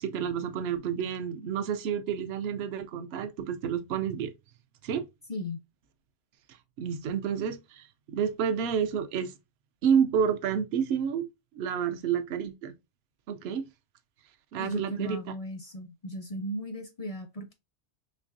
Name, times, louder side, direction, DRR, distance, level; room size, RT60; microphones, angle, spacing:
voice 1, 0.0-4.3 4.8-5.1 6.8-9.3 9.8-11.3 11.6-12.7 13.3-13.7 14.5-15.2, right 7 dB, 70° right, 0.8 m, -29 dB
voice 2, 14.6-17.5, equal, 50° left, 0.4 m, -36 dB
4.4 x 3.1 x 2.5 m
omnidirectional pair, 1.2 m